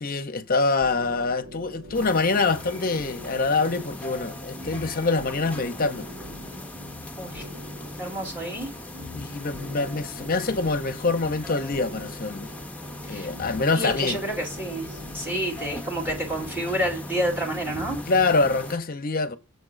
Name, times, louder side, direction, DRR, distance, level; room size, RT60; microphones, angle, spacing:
voice 1, 0.0-6.1 9.1-12.5 13.1-14.2 18.1-19.4, left 3 dB, 45° left, 0.8 m, -25 dB
sound 1, 0.8-18.3, equal, 60° right, 1.9 m, -45 dB
sound 2, 1.9-18.8, left 1 dB, 5° left, 0.9 m, -39 dB
voice 2, 7.2-7.5 8.0-8.7 13.0-13.3 13.7-18.0, right 1 dB, 10° right, 2.3 m, -29 dB
7.0 x 3.7 x 6.2 m
head